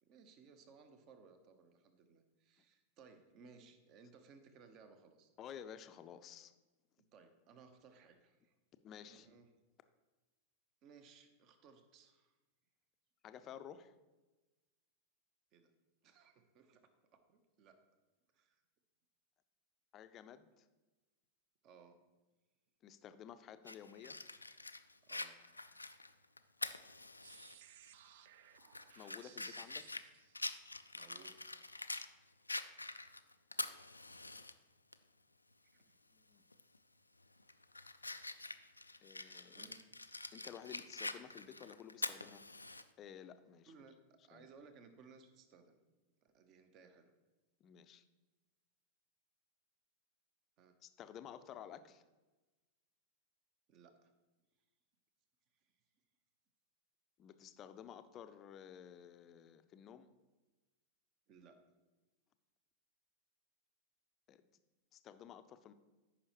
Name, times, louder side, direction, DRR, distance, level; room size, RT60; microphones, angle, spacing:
voice 1, 0.0-5.3 7.1-8.5 9.1-9.5 10.8-12.4 15.5-15.7 16.0-17.8 18.3-18.6 21.6-22.0 25.1-25.4 30.9-31.4 35.7-36.0 39.5-39.8 43.7-44.0 44.2-45.8 46.2-47.1 50.6-50.8 53.7-54.1 55.6-55.7 61.3-61.6, right 5 dB, 40° right, 9 dB, 0.9 m, -62 dB
voice 2, 5.4-6.5 8.8-9.3 13.2-13.9 19.9-20.7 22.8-24.2 29.0-29.9 36.1-36.4 39.0-39.6 40.3-42.4 43.0-43.7 44.3-44.5 47.6-48.0 50.8-52.0 57.2-60.1 64.3-64.4 64.9-65.7, left 9 dB, 30° left, 11 dB, 0.5 m, -53 dB
Fire, 23.7-27.5 27.9-28.0 28.5-32.1 32.5-34.5 34.9-35.0 36.5-36.8 37.2-42.8, left 2 dB, 85° left, 0.3 m, -45 dB
sound 1, 27.2-31.0, right 10 dB, 55° right, 0.4 m, -62 dB
14.0 x 5.6 x 3.1 m, 1.2 s
figure-of-eight pair, 90°, 0 cm